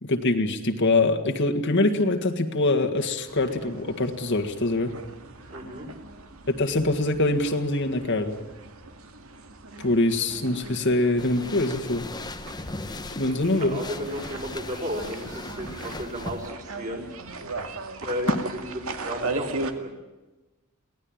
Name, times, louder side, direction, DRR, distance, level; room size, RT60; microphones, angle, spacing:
voice 1, 0.0-5.0 6.5-8.4 9.8-12.1 13.2-13.8, left 2 dB, 55° left, 5 dB, 1.9 m, -24 dB
sound 1, 3.3-19.7, right 3 dB, 75° right, 2.2 m, -39 dB
voice 2, 5.5-5.9 13.2-17.1 18.0-18.7 19.0-19.9, equal, 35° right, 1 dB, 6.1 m, -34 dB
sound 2, 11.2-16.5, left 2 dB, 20° left, 0.9 m, -38 dB
23.5 x 17.5 x 8.9 m, 1.1 s
head